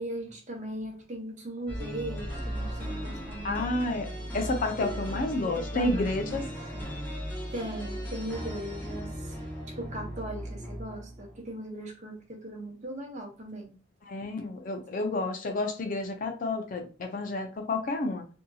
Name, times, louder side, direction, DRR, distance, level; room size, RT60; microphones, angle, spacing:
voice 1, 0.0-3.6 5.4-6.5 6.7-7.3 7.5-9.3 9.7-13.7, right 1 dB, 40° right, 1 dB, 0.8 m, -39 dB
sound 1, 1.7-11.5, equal, 10° left, 0.7 m, -37 dB
voice 2, 3.4-4.1 4.3-6.5 14.0-18.2, left 2 dB, 45° left, 5 dB, 0.5 m, -30 dB
2.7 x 2.6 x 2.3 m, 0.36 s
head